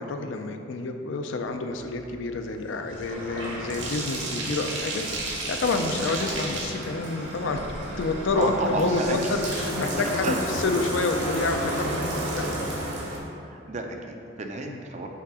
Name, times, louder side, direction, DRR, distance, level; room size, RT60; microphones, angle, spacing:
voice 1, 0.0-7.6 8.0-12.7 14.7-14.8, left 3 dB, 65° left, 5 dB, 0.4 m, -28 dB
Bathtub (filling or washing), 1.8-13.2, right 1 dB, 65° right, 1.3 m, -32 dB
voice 2, 8.4-9.4 10.2-10.5 13.4-15.1, right 2 dB, 35° right, 3 dB, 0.5 m, -31 dB
5.7 x 3.8 x 4.8 m, 2.6 s
head